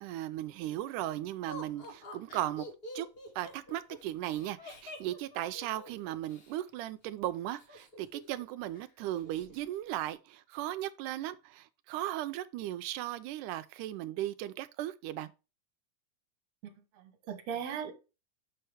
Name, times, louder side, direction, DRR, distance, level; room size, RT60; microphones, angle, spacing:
voice 1, 0.0-2.7 3.0-3.1 3.4-15.3, right 13 dB, 80° right, 2.1 m, -37 dB
Laughter, 1.5-6.5 7.6-8.4 8.7-8.8 9.2-9.6, left 1 dB, 55° left, 0.6 m, -47 dB
voice 2, 16.6-17.9, right 7 dB, 60° right, 2.3 m, -39 dB
7.0 x 5.7 x 3.4 m
omnidirectional pair, 3.7 m